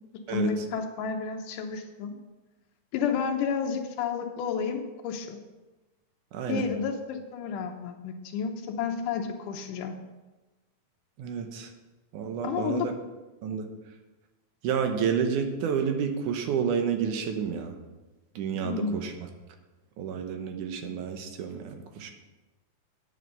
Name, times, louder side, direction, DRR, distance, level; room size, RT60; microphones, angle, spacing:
voice 1, 0.3-2.2 2.9-5.4 6.5-10.0 12.4-12.9 18.5-19.0, left 6 dB, 80° left, 2 dB, 2.3 m, -31 dB
voice 2, 6.3-6.6 11.2-11.7 12.1-12.9 13.4-13.7 14.6-17.8 18.4-19.1 20.0-22.1, right 7 dB, 75° right, 5 dB, 2.4 m, -30 dB
9.4 x 6.6 x 6.7 m, 1.1 s
omnidirectional pair, 3.7 m